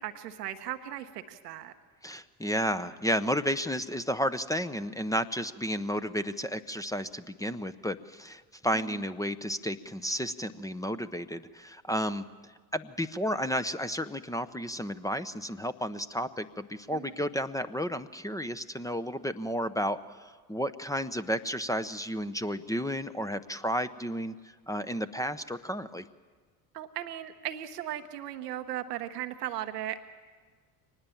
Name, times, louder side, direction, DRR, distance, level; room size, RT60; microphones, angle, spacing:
voice 1, 0.0-1.7 8.7-8.9 16.9-17.2 26.7-30.0, right 12 dB, 85° right, 9 dB, 1.1 m, -37 dB
voice 2, 2.0-12.2 12.7-24.3 24.7-26.0, equal, 5° left, 11 dB, 0.8 m, -32 dB
24.0 x 19.5 x 7.2 m, 1.5 s
hypercardioid pair, 65°, 47 cm